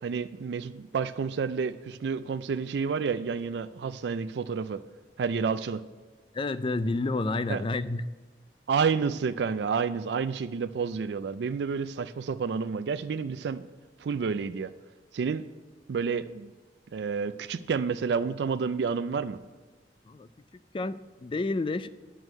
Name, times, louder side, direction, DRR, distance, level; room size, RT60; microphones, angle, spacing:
voice 1, 0.0-4.8 5.2-5.8 7.5-7.6 8.7-13.6 14.0-14.7 15.1-15.4 15.9-16.5 16.9-19.4, right 5 dB, 70° right, 0.4 m, -29 dB
voice 2, 6.3-8.1 20.1-20.3 20.7-21.9, left 2 dB, 30° left, 0.4 m, -29 dB
9.0 x 6.2 x 6.4 m
head